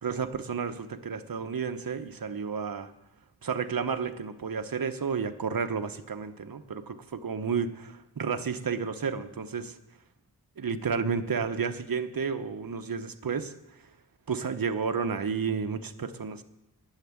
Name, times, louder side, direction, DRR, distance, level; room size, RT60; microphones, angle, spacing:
voice 1, 0.0-2.9 3.4-9.7 10.6-13.5 14.3-16.4, right 6 dB, 60° right, 8 dB, 1.0 m, -31 dB
10.5 x 7.4 x 9.5 m, 0.87 s
wide cardioid pair, 55°, 39 cm